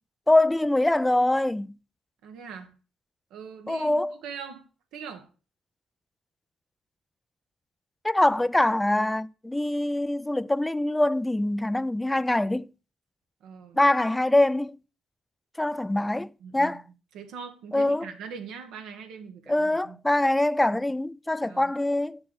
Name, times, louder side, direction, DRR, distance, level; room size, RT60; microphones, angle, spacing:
voice 1, 0.3-1.7 3.7-4.2 8.0-12.7 13.7-14.8 15.6-16.8 17.7-18.0 19.5-22.2, left 1 dB, 15° left, 0.4 m, -24 dB
voice 2, 2.2-2.7 3.3-4.7 4.9-5.3 13.4-13.9 16.4-16.8 17.1-20.0 21.4-21.7, right 6 dB, 80° right, 1.6 m, -42 dB
7.4 x 6.8 x 3.9 m
supercardioid pair, 60°, 0 cm